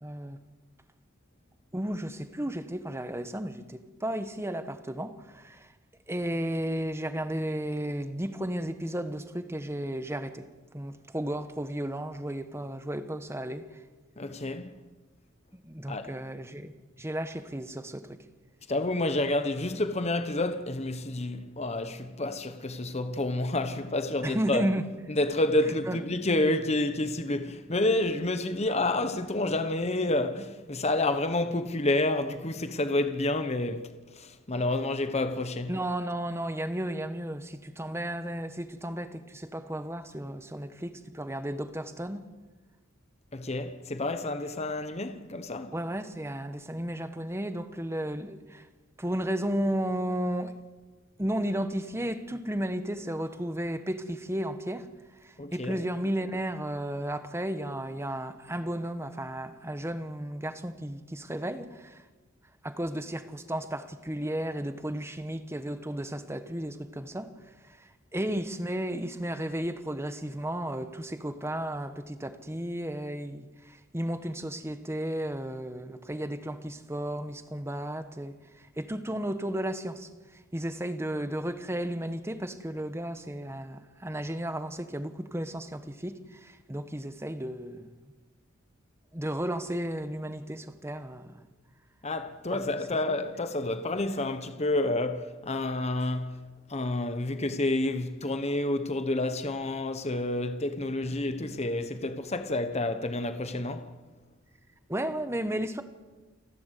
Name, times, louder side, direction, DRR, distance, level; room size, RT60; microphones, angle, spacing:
voice 1, 0.0-0.4 1.7-5.7 6.1-10.5 10.7-13.6 15.5-18.2 24.2-24.8 25.9-26.0 35.7-42.3 45.7-48.7 49.0-50.5 51.2-54.9 55.2-62.0 62.6-67.3 67.6-80.1 80.5-87.9 89.1-91.4 101.0-101.1 104.9-105.8, right 1 dB, 15° right, 1.2 m, -34 dB
voice 2, 14.2-14.7 15.9-16.1 18.7-24.7 25.1-35.7 43.3-45.7 55.4-55.8 92.0-96.4 96.7-103.9, left 2 dB, 30° left, 1.2 m, -29 dB
29.0 x 11.5 x 8.3 m
head